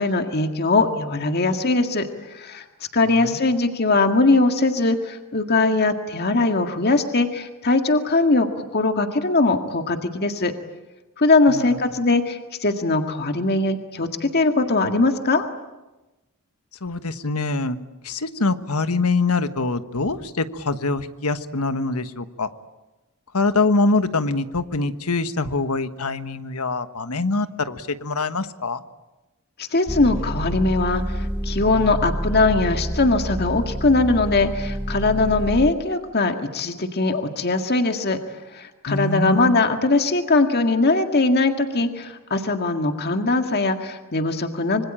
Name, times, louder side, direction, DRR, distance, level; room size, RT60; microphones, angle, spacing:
voice 1, 0.0-2.6 2.9-10.5 11.2-15.4 29.6-38.2 38.5-44.8, left 3 dB, 45° left, 6 dB, 1.9 m, -21 dB
voice 2, 16.8-17.8 18.0-22.5 23.3-28.8 38.9-39.6, left 3 dB, 85° left, 11 dB, 1.4 m, -24 dB
sound 1, 29.9-35.7, equal, 5° right, 1.0 m, -28 dB
26.0 x 24.5 x 8.8 m, 1.1 s
head